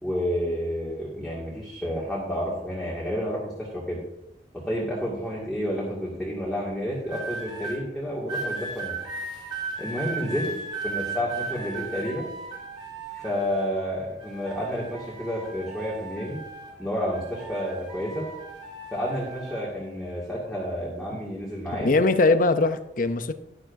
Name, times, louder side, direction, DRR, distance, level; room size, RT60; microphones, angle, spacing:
voice 1, 0.0-4.0 4.6-9.0 9.8-10.5 10.8-12.3 13.1-16.4 16.8-18.3 18.9-21.9, equal, ahead, -7 dB, 2.1 m, -30 dB
sound 1, 7.0-7.8 8.3-13.8 14.2-16.8 17.1-19.6 20.4-20.7, right 3 dB, 30° right, 4.1 m, -36 dB
voice 2, 21.7-23.3, left 3 dB, 45° left, 11 dB, 0.6 m, -21 dB
12.0 x 11.5 x 2.7 m, 0.87 s
head